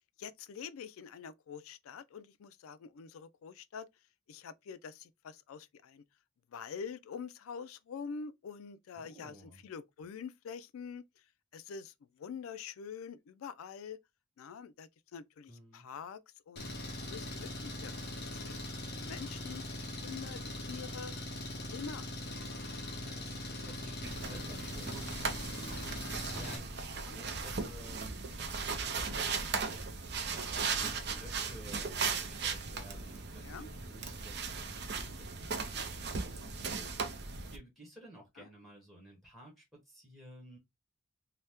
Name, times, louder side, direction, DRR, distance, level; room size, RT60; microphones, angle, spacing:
voice 1, 0.2-3.9 4.3-6.0 6.5-9.4 9.6-11.0 11.5-14.0 14.4-18.0 18.3-18.6 18.9-20.4 20.7-21.1 21.7-22.1 27.0-27.2 33.4-33.7 36.8-37.0 38.4-38.5, left 6 dB, 85° left, 0.4 m, -46 dB
voice 2, 9.0-9.6 15.5-15.9 22.9-40.6, equal, ahead, 1.0 m, -54 dB
Engine, 16.6-26.6, left 1 dB, 50° left, 0.9 m, -41 dB
sound 1, 24.0-37.6, right 5 dB, 50° right, 0.5 m, -37 dB
2.8 x 2.1 x 3.4 m
head